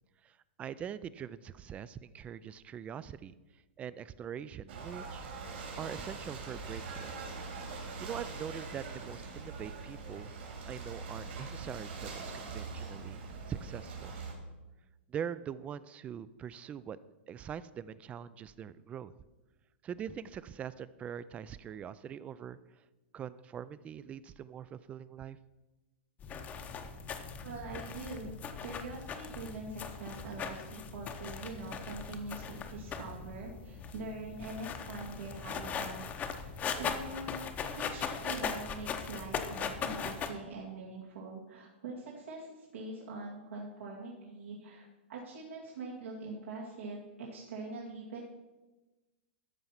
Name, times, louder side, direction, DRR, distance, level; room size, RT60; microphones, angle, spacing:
voice 1, 0.2-3.3 3.8-5.3 5.8-7.3 7.7-10.4 10.7-13.2 13.5-14.1 15.1-17.0 17.3-19.1 19.8-22.6 23.1-25.4, right 8 dB, 20° right, 17 dB, 0.3 m, -43 dB
Ocean / Boat Water vehicle, 4.7-14.3, right 4 dB, 65° right, 3.4 m, -43 dB
sound 1, 26.2-40.3, left 6 dB, 25° left, 0.8 m, -39 dB
voice 2, 27.4-36.4 36.8-48.2, right 3 dB, 85° right, -5 dB, 2.4 m, -44 dB
13.0 x 4.7 x 5.8 m, 1.1 s
hypercardioid pair, 140°, 7 cm